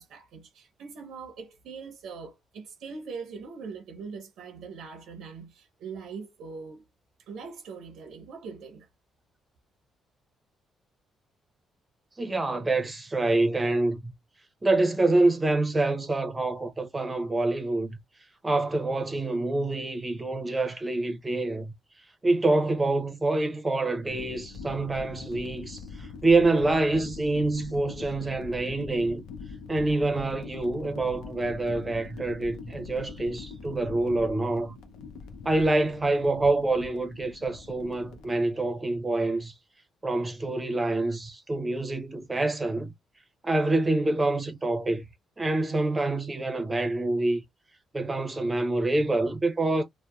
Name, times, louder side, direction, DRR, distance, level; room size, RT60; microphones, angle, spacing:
voice 1, 0.0-6.8 7.2-8.9, right 5 dB, 85° right, 0.7 m, -42 dB
voice 2, 12.2-14.1 14.6-18.0 18.4-21.7 22.2-29.2 29.7-34.8 35.4-39.5 40.0-42.9 43.4-45.1 45.4-47.4 47.9-49.8, right 2 dB, 20° right, 0.8 m, -26 dB
sound 1, 24.1-38.3, left 5 dB, 90° left, 0.6 m, -43 dB
2.8 x 2.2 x 2.3 m
cardioid pair, 90°, 0 cm